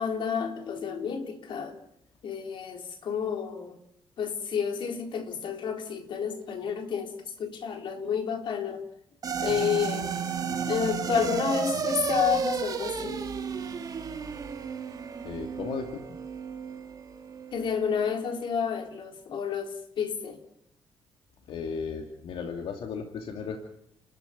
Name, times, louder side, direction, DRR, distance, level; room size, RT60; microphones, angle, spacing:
voice 1, 0.0-1.8 2.2-3.8 4.2-8.8 9.4-10.1 10.7-13.2 17.5-20.4, left 7 dB, 60° left, 4 dB, 4.2 m, -30 dB
sound 1, 9.2-17.7, right 6 dB, 40° right, 2.2 m, -33 dB
voice 2, 15.2-16.0 21.5-23.6, left 6 dB, 80° left, 4 dB, 2.5 m, -35 dB
29.5 x 13.5 x 9.4 m, 0.77 s
cardioid pair, 145°, 9 cm